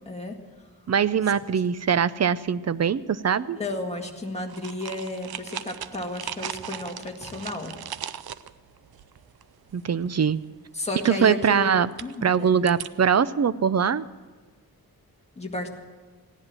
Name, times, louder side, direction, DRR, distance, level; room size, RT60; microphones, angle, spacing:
voice 1, 0.1-0.4 3.5-7.7 10.7-11.7 12.0-12.6 15.4-15.7, left 2 dB, 15° left, 1 dB, 1.9 m, -33 dB
voice 2, 0.9-3.6 9.7-10.4 11.0-11.9 12.2-14.0, right 7 dB, 45° right, 15 dB, 0.5 m, -22 dB
Chewing Gum and Container, 4.5-9.7 10.0-10.4 11.9-13.1, right 9 dB, 85° right, 0.6 m, -38 dB
16.0 x 10.5 x 7.5 m, 1.4 s
wide cardioid pair, 125°, 36 cm